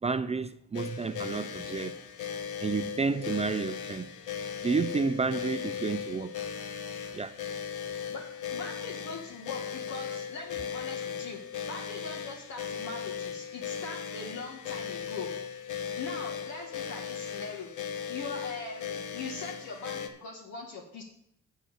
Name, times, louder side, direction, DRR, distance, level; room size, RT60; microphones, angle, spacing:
voice 1, 0.0-2.0 2.6-4.1 4.6-6.3 7.1-7.4, right 4 dB, 20° right, 0.4 m, -30 dB
sound 1, 0.7-20.1, left 7 dB, 80° left, 1.2 m, -37 dB
voice 2, 7.9-11.4 11.7-15.3 16.0-17.7 18.1-21.0, left 3 dB, 65° left, 1.7 m, -41 dB
7.8 x 7.6 x 6.5 m
cardioid pair, 90°, 30 cm